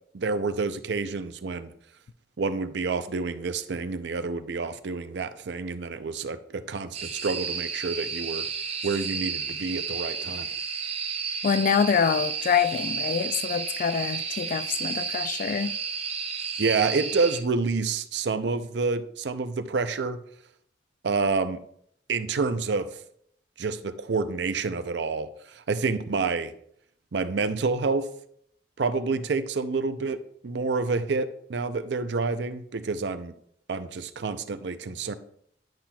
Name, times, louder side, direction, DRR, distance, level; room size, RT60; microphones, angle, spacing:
voice 1, 0.1-1.7 2.4-8.5 8.8-10.5 16.6-20.2 21.0-21.6 22.1-22.9 23.6-26.5 27.1-28.1 28.8-33.3 33.7-35.1, right 4 dB, 70° right, 0.5 m, -28 dB
sound 1, 6.9-17.4, right 6 dB, 35° right, 0.7 m, -32 dB
voice 2, 11.4-15.7, left 7 dB, 45° left, 0.3 m, -25 dB
10.5 x 5.7 x 2.3 m
head